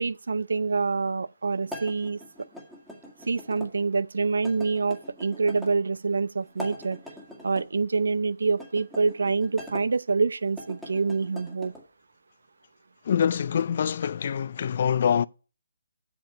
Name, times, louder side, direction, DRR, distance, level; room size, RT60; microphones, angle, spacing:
voice 1, 0.0-2.5 3.3-7.0 7.4-11.7, right 4 dB, 75° right, 0.5 m, -26 dB
sound 1, 1.7-3.7 4.4-5.7 6.5-7.7 8.5-9.8 10.4-11.8, equal, 5° right, 1.9 m, -42 dB
voice 2, 13.1-15.3, left 8 dB, 50° left, 0.4 m, -25 dB
8.0 x 6.9 x 5.7 m
hypercardioid pair, 155°, 0 cm